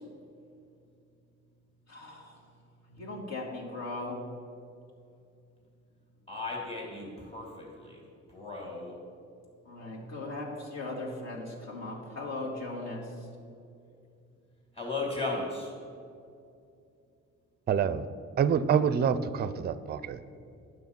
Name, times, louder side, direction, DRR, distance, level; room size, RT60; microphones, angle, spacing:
voice 1, 1.9-2.4 2.9-4.2 9.7-13.0, left 2 dB, 60° left, -3 dB, 2.2 m, -38 dB
voice 2, 6.3-8.0 8.3-8.9 14.8-15.7, left 3 dB, 20° left, -3 dB, 2.2 m, -36 dB
voice 3, 17.7-18.1 18.4-20.2, right 7 dB, 35° right, 14 dB, 0.4 m, -26 dB
9.4 x 6.2 x 5.3 m, 2.5 s
cardioid pair, 90°, 30 cm